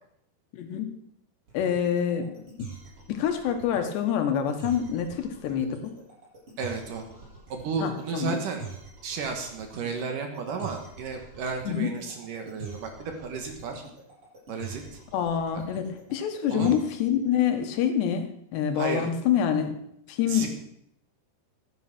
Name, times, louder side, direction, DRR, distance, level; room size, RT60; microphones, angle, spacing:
voice 1, 0.5-0.9 1.5-2.7 3.1-5.9 7.8-8.4 11.7-11.9 15.1-19.7 20.1-20.5, left 8 dB, 85° left, 6 dB, 3.5 m, -26 dB
sound 1, 1.5-17.1, right 4 dB, 30° right, 8.4 m, -44 dB
voice 2, 6.6-7.0 7.5-8.6 9.0-13.8 14.5-14.8 16.5-16.7 18.7-19.1 20.3-20.5, right 5 dB, 60° right, 4 dB, 2.7 m, -33 dB
14.5 x 10.0 x 6.0 m, 0.74 s
omnidirectional pair, 4.8 m